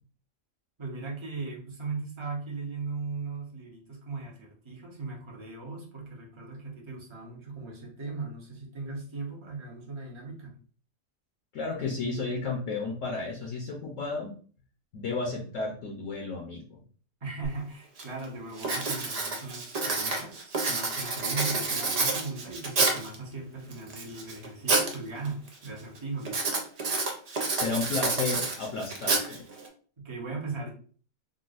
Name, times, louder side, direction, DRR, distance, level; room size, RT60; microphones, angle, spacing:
voice 1, 0.8-10.5 17.2-26.6 30.0-30.7, right 3 dB, 25° right, -1 dB, 0.7 m, -38 dB
voice 2, 11.5-14.4 14.9-16.8 27.5-29.5, left 3 dB, 65° left, -1 dB, 1.0 m, -32 dB
Writing, 17.4-17.5 18.0-18.2 18.6-23.1 23.7-24.9 25.2-25.7 26.2-29.7, right 3 dB, 70° right, 0.3 m, -29 dB
3.9 x 2.2 x 2.5 m, 0.43 s
omnidirectional pair, 1.5 m